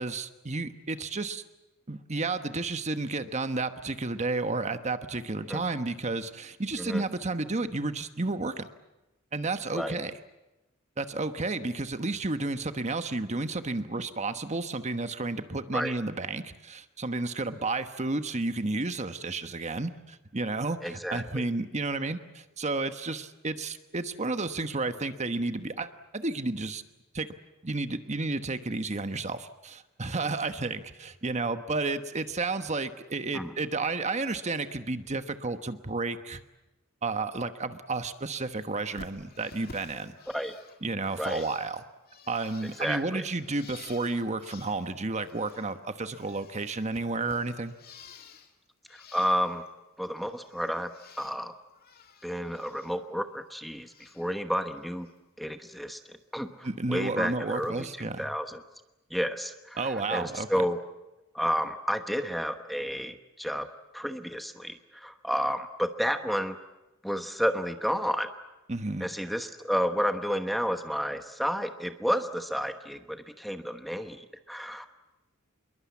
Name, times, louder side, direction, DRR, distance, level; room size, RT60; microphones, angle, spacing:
voice 1, 0.0-1.4 1.9-8.7 9.3-10.1 11.0-26.8 27.1-27.3 27.6-36.4 37.0-40.1 40.8-41.8 42.3-47.7 56.6-58.3 59.8-60.6 68.7-69.1, right 3 dB, 35° right, 9 dB, 1.2 m, -32 dB
voice 2, 20.8-21.5 33.3-33.5 40.3-40.5 41.2-41.4 42.8-43.2 49.1-49.6 50.0-50.9 51.2-51.5 52.2-55.1 55.4-56.0 56.3-58.6 59.1-60.8 61.3-63.7 63.9-66.6 67.0-68.3 69.0-74.9, equal, ahead, 7 dB, 1.1 m, -31 dB
Bird, 39.0-45.8 46.0-48.5 48.9-49.7 50.0-51.4 51.7-52.9 53.3-54.3 54.7-55.1 56.4-56.5 57.5-57.7, left 5 dB, 45° left, 2.3 m, -52 dB
27.0 x 22.0 x 8.5 m, 0.98 s
head